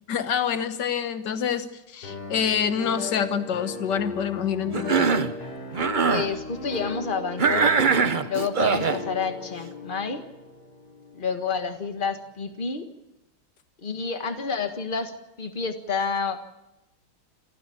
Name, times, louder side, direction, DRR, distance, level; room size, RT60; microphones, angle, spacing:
voice 1, 0.1-5.1, left 7 dB, 55° left, 10 dB, 1.8 m, -27 dB
sound 1, 2.0-12.0, left 3 dB, 90° left, 5.3 m, -37 dB
Cough, 4.7-5.3 5.7-6.3 7.4-9.0, right 5 dB, 65° right, 0.4 m, -22 dB
voice 2, 6.1-7.9 8.2-10.3 11.1-12.9 13.8-16.5, left 5 dB, 25° left, 7 dB, 1.5 m, -29 dB
28.0 x 14.0 x 8.6 m, 0.96 s
omnidirectional pair, 2.3 m